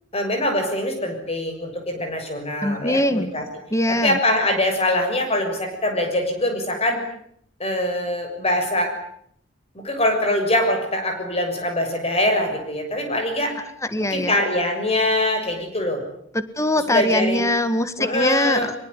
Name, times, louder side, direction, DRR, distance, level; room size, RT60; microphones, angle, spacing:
voice 1, 0.1-3.4 4.0-7.0 7.6-8.9 9.7-13.5 13.9-16.0 16.9-17.5 18.0-18.7, left 1 dB, 30° left, 5 dB, 6.8 m, -23 dB
voice 2, 2.6-3.3 3.7-4.2 13.9-14.3 16.3-18.7, left 1 dB, 15° left, 11 dB, 1.7 m, -22 dB
23.5 x 23.0 x 9.8 m, 0.68 s
head